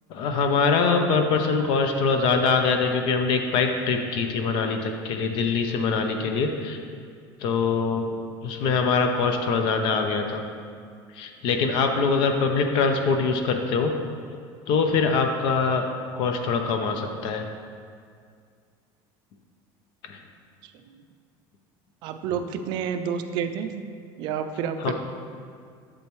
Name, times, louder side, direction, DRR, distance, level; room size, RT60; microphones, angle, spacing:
voice 1, 0.1-6.8 7.4-10.4 11.2-13.9 14.7-15.9 16.2-17.4 20.0-20.2 24.8-24.9, left 4 dB, 50° left, 5 dB, 0.6 m, -23 dB
voice 2, 20.6-21.0 22.0-23.9 24.2-24.9, right 7 dB, 45° right, 8 dB, 0.4 m, -30 dB
8.5 x 6.9 x 3.1 m, 2.2 s
cardioid pair, 175°, 10 cm